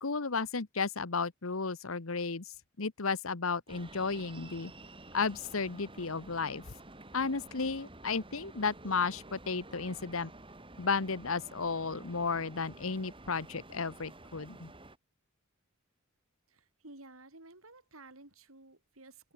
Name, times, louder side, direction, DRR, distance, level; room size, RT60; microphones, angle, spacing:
voice 1, 0.0-2.4 2.8-4.7 5.1-6.6 7.1-10.3 10.8-14.7, left 4 dB, 75° left, 1.2 m, -33 dB
sound 1, 3.7-15.0, right 2 dB, 25° right, 5.1 m, -51 dB
voice 2, 16.5-19.3, right 2 dB, 80° right, 5.3 m, -54 dB
open air
head